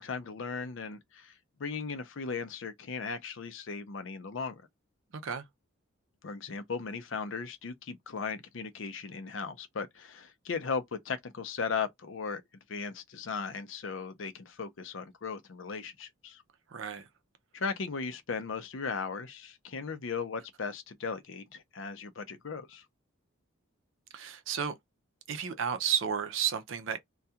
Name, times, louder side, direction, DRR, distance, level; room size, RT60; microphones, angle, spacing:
voice 1, 0.0-1.3 1.6-4.6 6.2-12.4 12.7-16.4 17.5-22.8, left 5 dB, 60° left, 0.5 m, -37 dB
voice 2, 5.1-5.5 16.7-17.1 24.1-24.7 25.3-27.0, right 8 dB, 65° right, 0.5 m, -32 dB
2.3 x 2.2 x 2.7 m
head